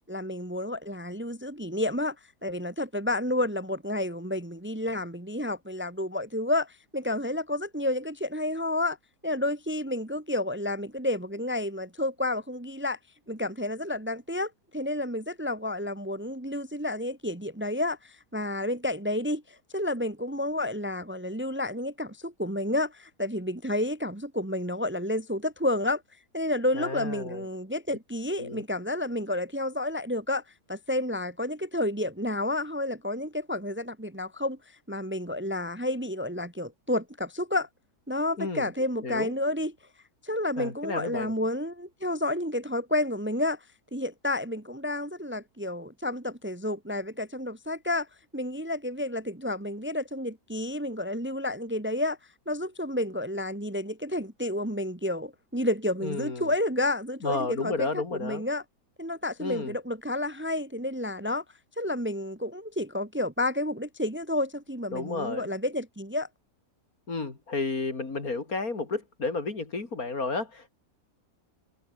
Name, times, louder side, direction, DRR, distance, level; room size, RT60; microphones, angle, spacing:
voice 1, 0.1-2.1 2.4-9.0 9.2-13.0 13.3-26.0 26.3-30.4 30.7-34.6 34.9-37.7 38.1-39.7 40.2-43.6 43.9-48.1 48.3-52.2 52.5-57.9 58.2-58.6 59.0-61.4 61.8-66.3, left 1 dB, 10° right, 1.3 m, -30 dB
voice 2, 26.7-27.4 28.4-28.6 38.4-38.7 39.0-39.3 40.6-41.3 56.0-56.5 57.2-58.5 59.4-59.8 64.9-65.5 67.1-70.7, left 3 dB, 65° left, 3.9 m, -32 dB
omnidirectional pair, 1.7 m